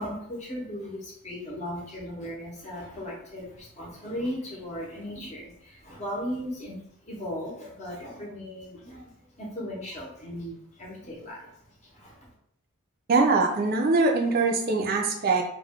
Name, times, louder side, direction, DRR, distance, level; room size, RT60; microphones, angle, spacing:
voice 1, 0.0-11.5 11.8-12.2, equal, 30° left, -4 dB, 0.7 m, -37 dB
voice 2, 13.1-15.4, right 3 dB, 45° right, 2 dB, 0.4 m, -22 dB
2.3 x 2.1 x 3.5 m, 0.68 s
head